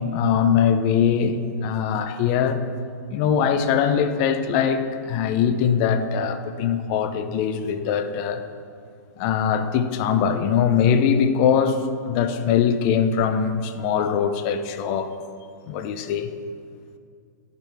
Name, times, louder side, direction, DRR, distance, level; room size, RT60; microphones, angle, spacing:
voice 1, 0.0-2.6 3.1-8.4 9.2-15.1 15.7-16.3, left 7 dB, 35° left, 0.5 m, -22 dB
10.5 x 5.9 x 3.4 m
hypercardioid pair, 145°, 10 cm